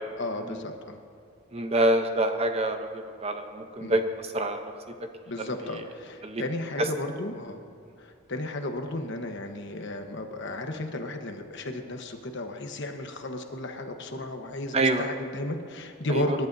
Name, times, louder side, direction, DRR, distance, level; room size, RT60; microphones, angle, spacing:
voice 1, 0.2-1.0 3.8-4.0 5.3-7.6 8.0-16.5, left 1 dB, 55° left, 5 dB, 1.1 m, -34 dB
voice 2, 1.5-4.0 4.3-4.6 5.0-5.1 5.4-5.5 6.2-6.4 14.7-15.0 16.1-16.4, right 1 dB, 30° right, 6 dB, 0.8 m, -26 dB
25.5 x 11.5 x 2.7 m, 2.4 s
head